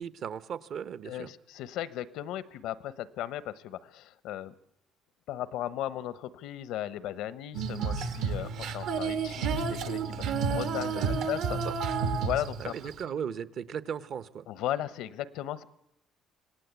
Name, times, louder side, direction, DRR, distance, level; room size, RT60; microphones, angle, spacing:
voice 1, 0.0-1.3 10.9-11.2 11.6-11.7 12.6-14.4, right 8 dB, 50° right, 14 dB, 1.0 m, -37 dB
voice 2, 1.0-4.6 5.3-11.6 12.2-12.9 14.5-15.6, left 12 dB, 80° left, 16 dB, 1.0 m, -36 dB
Female singing, 7.5-13.0, right 5 dB, 70° right, 1.7 m, -31 dB
26.0 x 18.0 x 8.3 m, 0.83 s
cardioid pair, 135°, 0 cm